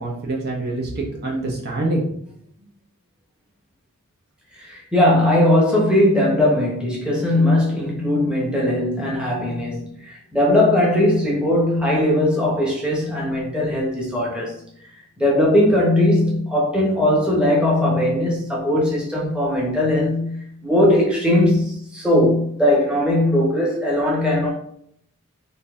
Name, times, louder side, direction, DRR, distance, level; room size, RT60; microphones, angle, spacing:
voice 1, 0.0-2.2, right 2 dB, 50° right, 0.9 m, -25 dB
voice 2, 4.6-14.5 15.2-24.5, left 1 dB, 5° right, 1.0 m, -19 dB
3.8 x 2.7 x 3.6 m
head